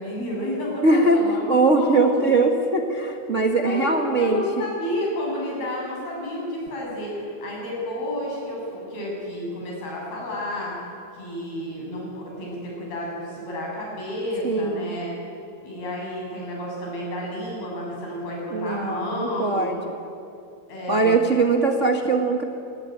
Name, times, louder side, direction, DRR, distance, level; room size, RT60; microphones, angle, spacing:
voice 1, 0.0-2.3 3.3-10.8 11.1-15.2 15.6-19.7 20.7-21.1, left 1 dB, 75° left, -3 dB, 9.4 m, -31 dB
voice 2, 0.8-1.2 1.5-4.7 14.4-15.0 18.5-20.0 20.9-22.4, right 3 dB, 70° right, 2 dB, 0.7 m, -21 dB
28.0 x 19.0 x 9.3 m, 2.7 s
omnidirectional pair, 4.5 m